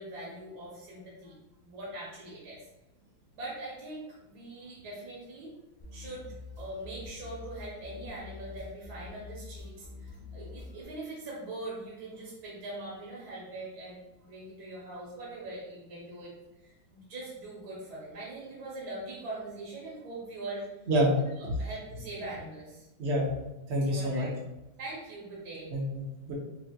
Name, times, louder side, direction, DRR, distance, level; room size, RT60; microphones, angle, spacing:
voice 1, 0.0-1.3 1.6-2.6 3.3-5.5 5.9-6.3 6.6-16.3 16.6-20.7 21.4-22.9 23.9-24.3 24.8-25.7, right 2 dB, 60° right, -6 dB, 1.4 m, -42 dB
sound 1, 5.8-10.8, left 4 dB, 55° left, 0.4 m, -46 dB
voice 2, 23.0-23.3 23.7-24.3 25.7-26.3, equal, 75° right, -2 dB, 0.6 m, -27 dB
5.4 x 2.7 x 2.2 m, 0.99 s
omnidirectional pair, 2.2 m